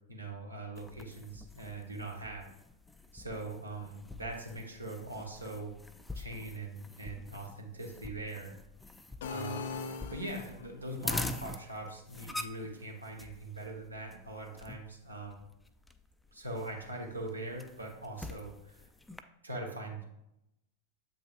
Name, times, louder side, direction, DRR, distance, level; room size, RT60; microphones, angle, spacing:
voice 1, 0.1-2.5 3.1-5.7 6.1-8.5 9.3-9.8 10.1-15.4 16.3-18.8 19.4-20.0, right 2 dB, 80° right, 1 dB, 1.1 m, -42 dB
sound 1, 0.8-19.2, left 2 dB, 5° left, 0.4 m, -45 dB
sound 2, 9.2-10.8, left 4 dB, 55° left, 0.5 m, -40 dB
7.6 x 5.4 x 2.5 m, 0.83 s
figure-of-eight pair, 90°, 0 cm